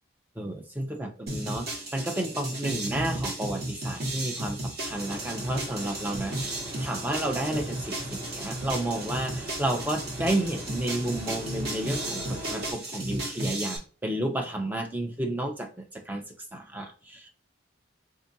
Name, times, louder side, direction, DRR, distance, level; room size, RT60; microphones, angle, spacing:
voice 1, 0.4-16.2 16.5-17.3, right 1 dB, 10° right, 0.5 m, -31 dB
sound 1, 1.3-13.8, right 1 dB, 50° right, 1.2 m, -34 dB
sound 2, 4.8-12.7, equal, 25° right, 0.9 m, -41 dB
3.6 x 2.4 x 4.0 m
head